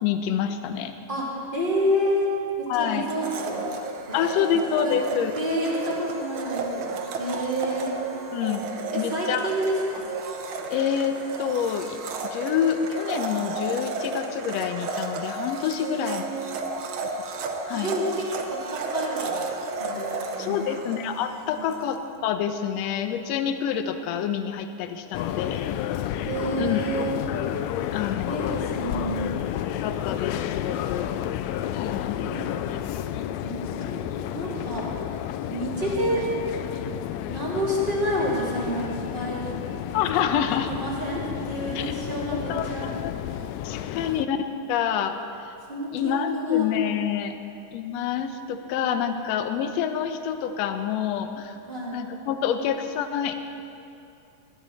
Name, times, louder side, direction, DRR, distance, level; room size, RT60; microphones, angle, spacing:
voice 1, 0.0-0.9 2.7-3.1 3.6-3.7 4.1-5.3 8.3-9.5 10.7-12.0 12.3-16.2 17.7-17.9 20.4-25.7 26.6-26.8 27.9-28.4 29.6-31.1 31.7-32.2 32.7-32.8 39.9-40.7 41.7-41.9 42.3-43.1 43.6-44.4 44.7-45.2 45.5-45.6 45.9-47.4 47.7-51.6 51.9-53.4, left 8 dB, 75° left, 8 dB, 1.6 m, -27 dB
voice 2, 1.1-2.3 2.6-3.7 4.1-4.2 4.4-5.0 5.3-6.9 7.2-7.9 8.9-10.1 15.8-16.5 17.7-19.3 19.8-20.6 21.4-21.7 26.2-27.2 28.2-29.3 32.3-32.8 33.4-34.0 34.3-35.0 35.5-36.3 37.3-39.5 40.8-42.9 45.7-46.7 51.7-51.9, equal, 15° right, -7 dB, 3.0 m, -29 dB
Domestic sounds home sounds, 3.1-21.9, right 3 dB, 85° right, 1.1 m, -33 dB
sound 1, 25.1-44.3, left 11 dB, 90° left, 1.5 m, -31 dB
20.0 x 12.0 x 4.4 m, 2.6 s
omnidirectional pair, 3.7 m